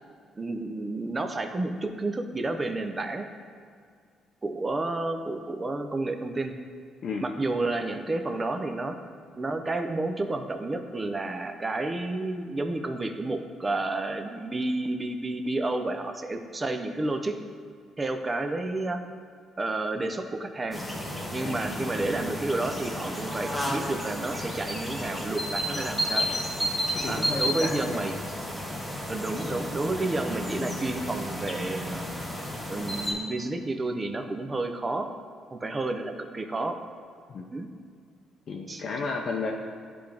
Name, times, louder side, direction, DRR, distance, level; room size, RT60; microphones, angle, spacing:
voice 1, 0.4-3.3 4.4-6.5 7.2-9.0 9.3-17.4 18.0-19.0 19.6-20.8 21.3-26.3 27.1-28.1 29.1-32.2 32.7-35.1 35.5-36.8 37.5-37.7 38.7-38.8, right 2 dB, 25° right, 6 dB, 0.6 m, -30 dB
sound 1, 20.7-33.1, equal, ahead, 1.2 m, -32 dB
voice 2, 26.6-28.0 37.3-37.4 38.5-39.5, left 4 dB, 50° left, 0 dB, 0.5 m, -33 dB
10.0 x 3.4 x 3.4 m, 2.1 s
cardioid pair, 95°, 0 cm